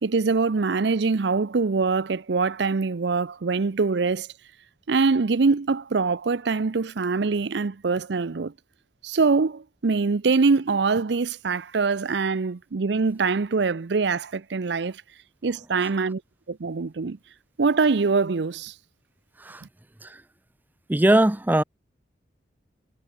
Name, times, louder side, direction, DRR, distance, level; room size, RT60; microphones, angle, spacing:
voice 1, 0.0-4.3 4.9-8.5 9.0-15.0 15.4-16.2 16.5-17.2 17.6-18.7, right 4 dB, 75° right, 0.6 m, -23 dB
voice 2, 20.9-21.6, right 1 dB, 10° right, 0.5 m, -20 dB
head